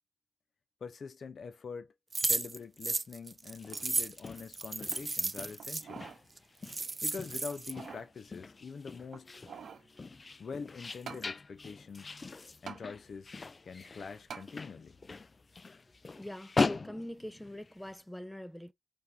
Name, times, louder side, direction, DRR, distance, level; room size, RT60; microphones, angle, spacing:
voice 1, 0.8-1.9 2.3-6.1 7.0-9.3 10.4-12.2 12.6-13.4 13.6-15.0, left 5 dB, 70° left, 0.8 m, -44 dB
sound 1, 2.1-5.8 6.4-6.5 6.6-7.7, right 3 dB, 40° right, 0.4 m, -34 dB
sound 2, 3.5-18.0, left 3 dB, 45° left, 0.3 m, -40 dB
sound 3, 5.6-6.2 6.7-6.8 7.5-8.1 9.1-9.9 11.1-11.3 12.7-12.8 14.3-14.5 15.1-15.2, right 6 dB, 80° right, 0.7 m, -46 dB
voice 2, 16.2-18.7, left 1 dB, 5° left, 0.7 m, -43 dB
5.2 x 3.0 x 2.8 m
cardioid pair, 55°, 0 cm